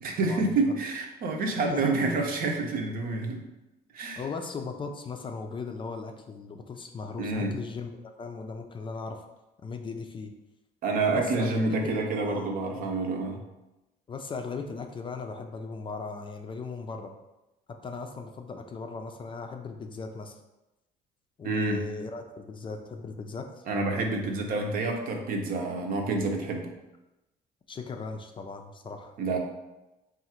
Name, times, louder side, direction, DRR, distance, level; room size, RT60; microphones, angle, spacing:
voice 1, 0.0-3.4 3.9-4.2 7.2-7.5 10.8-13.4 21.4-21.8 23.7-26.7 29.2-29.4, right 3 dB, 60° right, 2 dB, 0.7 m, -28 dB
voice 2, 1.6-2.3 4.2-9.2 9.6-10.3 11.1-12.5 14.1-17.1 17.7-20.4 21.4-23.6 27.7-29.1, left 4 dB, 30° left, 5 dB, 0.4 m, -38 dB
3.7 x 2.4 x 4.3 m, 0.98 s
cardioid pair, 110°, 17 cm